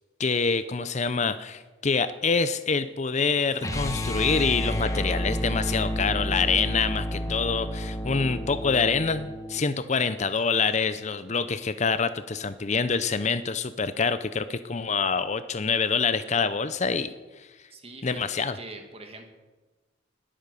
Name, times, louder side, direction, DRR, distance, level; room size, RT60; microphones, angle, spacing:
voice 1, 0.2-17.1 18.0-18.5, left 5 dB, 35° left, 12 dB, 0.6 m, -26 dB
sound 1, 3.6-9.6, equal, 15° left, 1.2 m, -30 dB
voice 2, 17.7-19.3, right 2 dB, 30° right, 5 dB, 2.1 m, -43 dB
20.5 x 9.1 x 6.9 m, 1.2 s
head